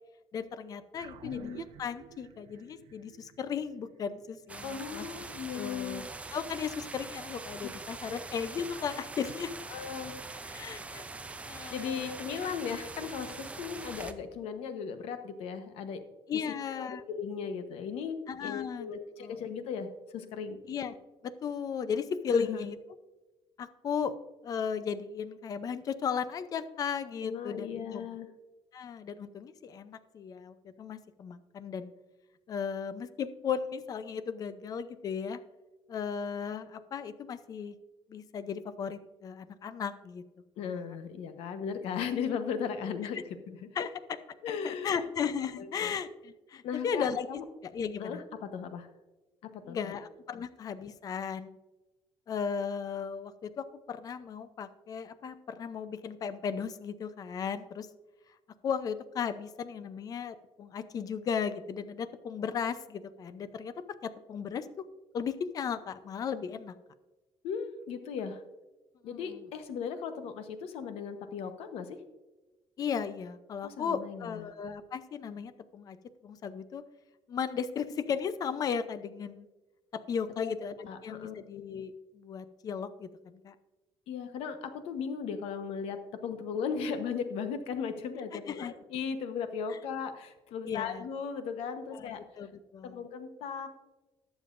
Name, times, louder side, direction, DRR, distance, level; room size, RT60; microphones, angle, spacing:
voice 1, 0.3-5.1 5.5-6.0 6.3-9.5 10.4-11.1 11.4-12.2 16.3-17.0 18.3-18.9 19.2-19.4 20.7-20.9 21.2-22.7 23.6-24.2 24.4-28.0 28.7-31.9 32.5-35.4 35.9-37.7 38.1-40.2 40.6-40.8 43.7-44.2 44.5-47.3 47.6-48.2 49.6-51.6 52.3-57.9 58.6-63.7 64.0-64.7 65.1-66.7 69.1-69.4 72.8-76.0 76.2-76.8 77.3-79.5 79.9-80.8 81.0-83.5 88.5-88.7 89.7-89.8 90.6-91.1 91.9-93.0, left 6 dB, 40° left, 13 dB, 0.6 m, -36 dB
sound 1, 0.9-5.6, right 10 dB, 90° right, 0.6 m, -51 dB
voice 2, 1.2-1.6 4.6-6.1 8.1-8.2 8.8-8.9 9.7-10.2 11.7-16.0 16.3-16.4 16.8-20.6 22.3-22.6 27.2-28.3 40.6-43.7 44.4-45.1 45.6-45.9 46.6-47.4 48.0-48.9 49.7-50.0 67.4-68.4 69.0-72.0 73.6-74.4 80.4-80.5 80.9-81.3 84.1-92.2 92.8-93.7, left 6 dB, 85° left, 9 dB, 1.0 m, -37 dB
sound 2, 4.5-14.1, right 3 dB, 15° right, 0.5 m, -43 dB
19.5 x 7.1 x 2.5 m, 1.1 s
cardioid pair, 150°, 10 cm